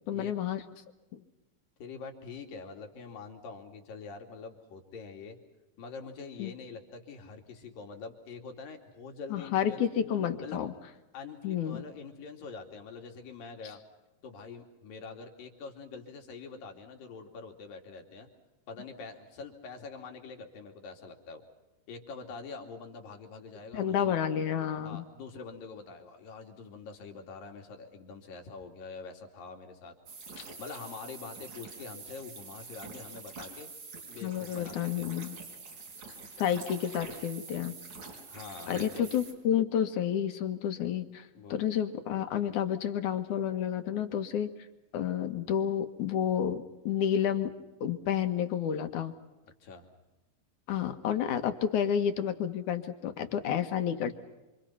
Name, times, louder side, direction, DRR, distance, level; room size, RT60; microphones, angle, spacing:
voice 1, 0.1-0.6 1.1-1.2 6.4-6.5 9.3-10.7 11.4-11.8 23.7-25.0 30.4-30.5 34.2-35.4 36.4-37.7 38.7-44.5 44.9-47.5 47.8-49.1 50.7-54.1, left 9 dB, 65° left, 8 dB, 2.8 m, -30 dB
voice 2, 1.8-5.4 5.8-9.8 10.4-10.6 11.1-13.8 14.2-18.3 18.7-21.5 21.9-24.2 24.8-30.0 30.6-33.7 34.1-35.1 38.3-39.1 41.3-41.6 49.6-49.9, left 4 dB, 85° left, 3 dB, 4.3 m, -45 dB
sound 1, 30.1-39.3, right 4 dB, 60° right, 5.7 m, -46 dB
27.0 x 27.0 x 5.7 m, 1.0 s
omnidirectional pair, 3.9 m